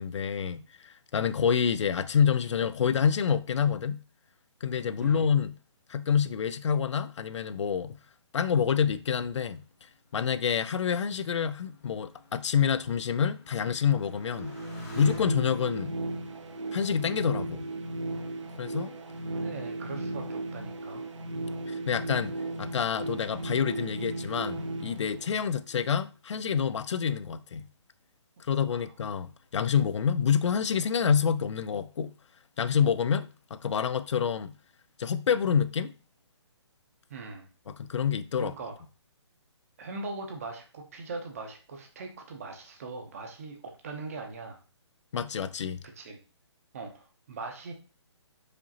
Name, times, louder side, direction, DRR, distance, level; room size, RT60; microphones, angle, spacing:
voice 1, 0.0-4.0 4.6-5.6 5.9-8.0 8.3-9.6 10.1-14.6 14.9-15.9 16.7-17.7 18.6-19.0 21.7-27.7 28.5-32.1 32.6-34.5 35.0-35.9 37.7-38.5 45.1-45.8, left 7 dB, 75° left, 0.4 m, -27 dB
Motorcycle, 9.0-18.0 18.8-19.3, left 3 dB, 30° left, 1.0 m, -49 dB
sound 1, 13.9-25.8, right 2 dB, 90° right, 0.8 m, -36 dB
voice 2, 19.4-21.0 28.7-28.9 37.1-37.5 38.4-38.7 39.8-43.6 43.8-44.6 46.0-46.2 46.7-47.7, right 3 dB, 30° right, 0.7 m, -40 dB
5.0 x 2.8 x 2.8 m
hypercardioid pair, 170°, 15 cm